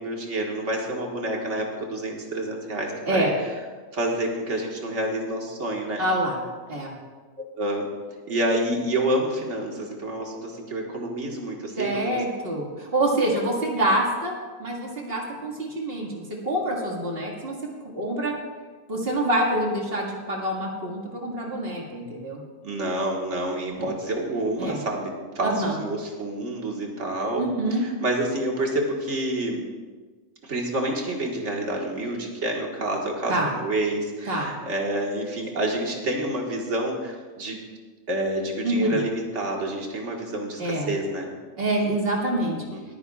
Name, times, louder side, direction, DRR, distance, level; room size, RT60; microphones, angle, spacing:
voice 1, 0.0-3.3 3.9-6.0 7.4-7.9 8.3-12.2 22.6-27.4 27.7-29.7 30.4-37.6 38.1-41.3 42.4-42.8, right 1 dB, 60° right, 0 dB, 2.0 m, -28 dB
voice 2, 6.0-6.4 6.7-6.9 11.8-14.3 14.6-17.6 17.9-18.3 18.9-22.4 23.8-23.9 24.6-24.8 25.4-25.8 27.4-27.8 33.3-33.5 34.3-34.5 38.6-39.0 40.6-40.9 41.6-42.6, right 1 dB, 45° right, -1 dB, 2.2 m, -26 dB
21.0 x 9.8 x 2.4 m, 1.4 s
omnidirectional pair, 1.4 m